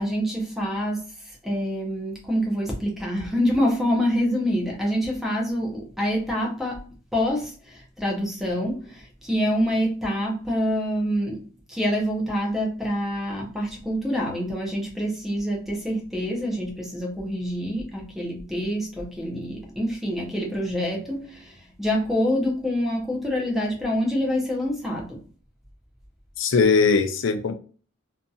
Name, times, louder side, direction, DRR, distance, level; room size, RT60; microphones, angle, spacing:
voice 1, 0.0-25.3, equal, ahead, 0.6 m, -26 dB
voice 2, 26.4-27.5, left 4 dB, 65° left, 0.4 m, -20 dB
2.7 x 2.6 x 2.3 m
head